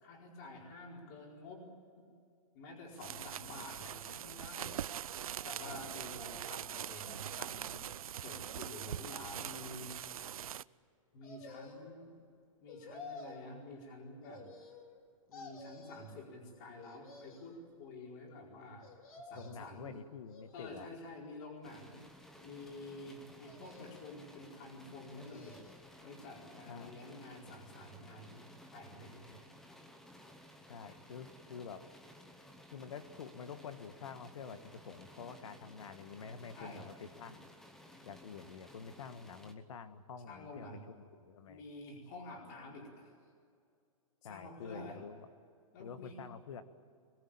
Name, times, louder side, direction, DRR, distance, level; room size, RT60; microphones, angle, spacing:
voice 1, 0.0-1.7 2.0-2.1 2.5-4.8 5.4-9.9 11.1-12.1 12.6-14.5 15.3-18.9 19.2-20.0 20.5-22.0 22.4-25.6 26.0-29.2 36.5-36.8 40.3-40.8 41.5-43.1 44.3-45.0 45.7-46.2, left 2 dB, 30° left, -1 dB, 4.6 m, -49 dB
sound 1, 2.9-10.6, right 10 dB, 80° right, 0.6 m, -43 dB
voice 2, 5.6-6.0 19.3-20.9 26.7-27.0 30.7-31.9 32.7-37.5 38.0-41.6 44.2-45.3 45.8-46.6, left 6 dB, 60° left, 10 dB, 1.7 m, -48 dB
sound 2, 11.2-12.0 12.7-13.5 14.2-15.0 15.3-16.2 16.8-17.6 18.8-19.7 20.3-21.0 21.6-22.4 23.4-24.2 24.9-25.9 26.3-26.4, left 3 dB, 80° left, 4.8 m, -52 dB
sound 3, 21.6-39.5, left 1 dB, ahead, 0.9 m, -57 dB
24.0 x 22.0 x 8.7 m, 2.3 s
hypercardioid pair, 180°, 18 cm